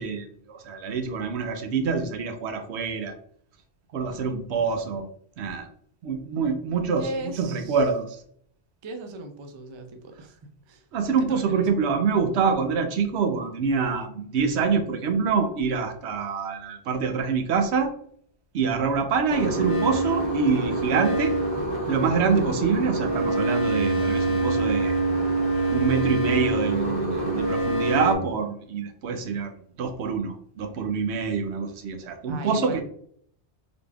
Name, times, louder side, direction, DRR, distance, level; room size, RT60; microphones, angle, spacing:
voice 1, 0.0-3.1 3.9-5.1 5.4-5.7 6.0-7.1 7.4-8.2 10.9-17.9 18.5-21.4 21.9-25.0 25.7-32.8, right 5 dB, 75° right, 6 dB, 0.9 m, -26 dB
voice 2, 7.0-7.8 8.8-10.8 11.2-11.6 32.3-32.8, right 2 dB, 50° right, 6 dB, 0.3 m, -37 dB
sound 1, 19.3-28.1, right 2 dB, 25° right, 1.0 m, -25 dB
3.8 x 3.4 x 2.3 m, 0.63 s
omnidirectional pair, 1.2 m